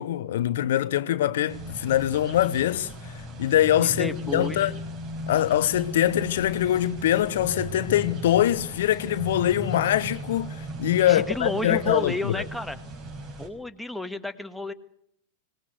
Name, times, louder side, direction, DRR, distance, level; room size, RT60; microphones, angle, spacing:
voice 1, 0.0-3.1 3.4-4.7 5.3-12.4, left 12 dB, 60° left, 0.8 m, -23 dB
sound 1, 1.5-13.5, right 1 dB, 35° right, 5.6 m, -37 dB
voice 2, 4.0-4.7 11.1-12.8 13.4-14.7, left 1 dB, ahead, 1.6 m, -31 dB
24.5 x 19.5 x 8.0 m
figure-of-eight pair, 90°, 0 cm